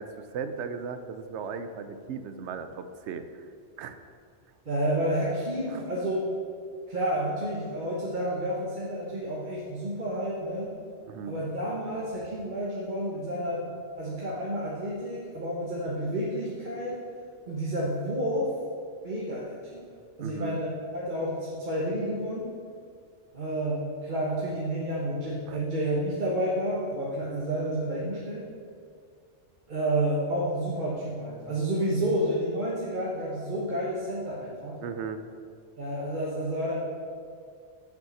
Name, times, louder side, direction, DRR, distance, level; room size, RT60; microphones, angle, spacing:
voice 1, 0.0-3.5 3.8-4.0 5.7-5.8 11.0-11.4 20.2-20.6 25.5-25.6 34.8-35.2, right 5 dB, 75° right, 9 dB, 0.9 m, -37 dB
voice 2, 4.6-6.2 6.9-10.7 11.3-13.7 14.0-17.0 17.5-18.5 19.0-19.8 20.2-22.5 23.3-28.5 29.7-34.8 35.8-36.7, right 1 dB, 45° right, -6 dB, 1.2 m, -30 dB
6.6 x 5.5 x 7.0 m, 2.2 s
omnidirectional pair, 1.2 m